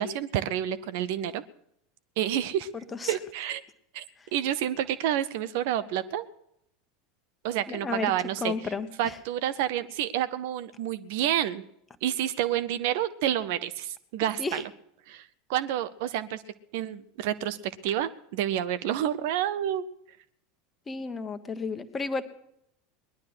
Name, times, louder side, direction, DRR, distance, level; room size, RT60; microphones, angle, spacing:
voice 1, 0.0-1.4 2.2-2.7 3.1-3.6 3.9-4.0 4.3-6.3 7.4-8.5 9.0-11.6 12.0-14.6 15.1-16.4 16.7-19.8, right 11 dB, 55° right, 14 dB, 0.8 m, -29 dB
voice 2, 7.7-8.1 8.4-9.2 14.4-14.6 20.9-22.2, left 4 dB, 20° left, 10 dB, 1.4 m, -32 dB
20.0 x 11.5 x 6.2 m, 0.74 s
figure-of-eight pair, 75°, 0 cm